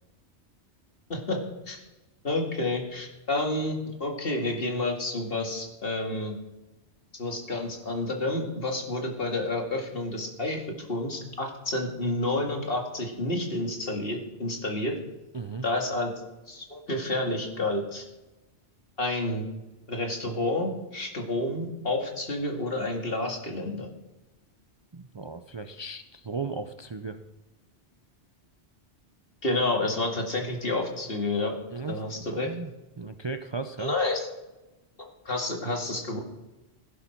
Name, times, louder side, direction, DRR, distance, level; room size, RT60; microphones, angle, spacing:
voice 1, 2.2-6.4 7.2-14.9 15.6-16.1 16.5-18.0 19.0-19.5 19.9-23.9 29.4-31.5 31.9-32.5 33.8-34.3 35.3-36.2, left 2 dB, 55° left, 2 dB, 2.3 m, -29 dB
voice 2, 15.3-15.7 24.9-27.2 31.7-32.7 33.0-33.9, right 4 dB, 35° right, 8 dB, 0.5 m, -36 dB
16.5 x 11.0 x 4.5 m, 1.0 s
omnidirectional pair, 1.2 m